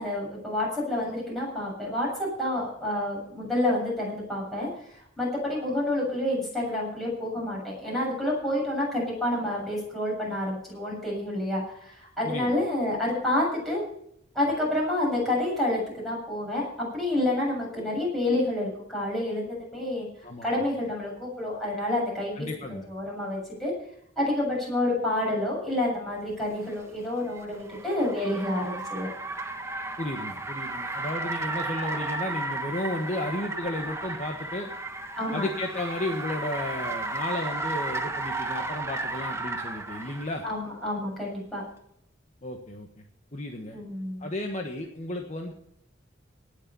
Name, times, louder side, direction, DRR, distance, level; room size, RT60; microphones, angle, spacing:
voice 1, 0.0-4.7 5.2-13.8 14.3-20.1 20.4-22.5 22.9-23.7 24.2-29.1 35.2-35.5 40.4-41.6 43.7-44.3, left 1 dB, ahead, -5 dB, 7.4 m, -28 dB
voice 2, 20.2-20.6 22.4-22.9 30.0-34.7 35.3-40.4 42.4-42.9 43.3-43.8 44.2-45.5, left 1 dB, 40° left, 2 dB, 1.4 m, -33 dB
Car, 26.5-40.4, right 2 dB, 15° right, 1.3 m, -34 dB
18.5 x 6.7 x 6.9 m, 0.71 s
head